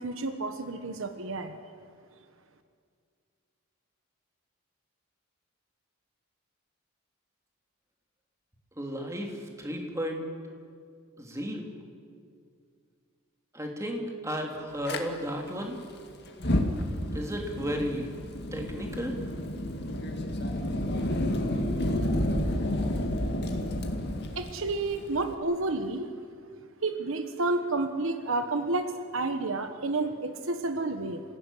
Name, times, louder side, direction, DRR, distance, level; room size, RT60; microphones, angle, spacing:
voice 1, 0.0-1.6 24.3-26.2 26.8-31.2, right 2 dB, 65° right, 8 dB, 1.3 m, -30 dB
voice 2, 8.8-10.3 11.2-11.7 13.5-15.8 17.1-18.1 18.5-19.2, equal, 15° right, 1 dB, 3.0 m, -34 dB
Fire, 14.9-15.0 16.3-25.3, left 1 dB, 50° left, 2.2 m, -30 dB
27.0 x 16.5 x 10.0 m, 2.3 s
head